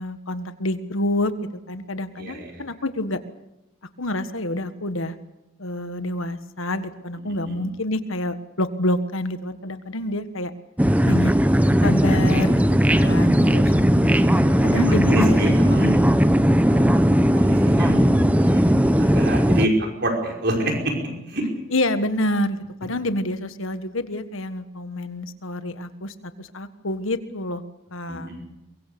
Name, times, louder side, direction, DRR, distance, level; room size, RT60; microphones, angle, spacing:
voice 1, 0.0-1.3 1.7-3.2 4.0-5.2 5.6-10.5 11.0-11.3 11.8-12.6 12.9-13.7 14.5-15.4 21.7-27.6 27.9-28.3, left 1 dB, 75° left, 10 dB, 1.6 m, -27 dB
voice 2, 2.2-2.6 7.4-7.6 13.2-13.6 14.7-16.0 16.7-21.5 28.1-28.4, right 1 dB, 50° right, 2 dB, 5.2 m, -27 dB
sound 1, 10.8-19.7, equal, 5° right, 0.8 m, -18 dB
23.5 x 22.5 x 6.9 m, 0.90 s
head